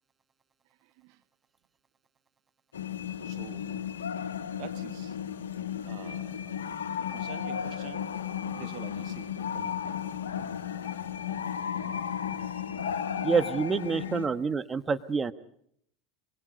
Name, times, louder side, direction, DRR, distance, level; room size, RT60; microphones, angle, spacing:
voice 1, 0.8-1.2 3.2-3.9 4.6-5.2 5.8-6.4 7.1-8.1 8.5-9.3 9.5-9.8, right 16 dB, 60° right, 11 dB, 1.3 m, -46 dB
sound 1, 2.7-14.3, left 8 dB, 80° left, 1.7 m, -34 dB
voice 2, 13.2-15.3, right 5 dB, 25° right, 10 dB, 1.4 m, -27 dB
25.0 x 23.5 x 5.3 m, 0.67 s
hypercardioid pair, 80°, 0 cm